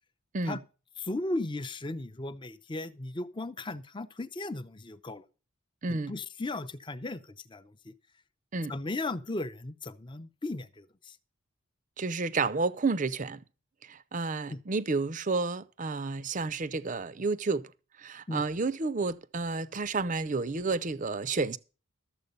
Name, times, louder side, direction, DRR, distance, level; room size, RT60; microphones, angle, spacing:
voice 1, 1.0-5.2 5.9-7.9 8.7-11.2 14.5-14.6 18.3-18.4, left 2 dB, 20° left, 0.6 m, -36 dB
voice 2, 5.8-6.1 8.5-8.7 12.0-13.4 13.8-17.7 18.0-21.6, right 3 dB, 35° right, 0.6 m, -31 dB
13.0 x 7.5 x 5.3 m
head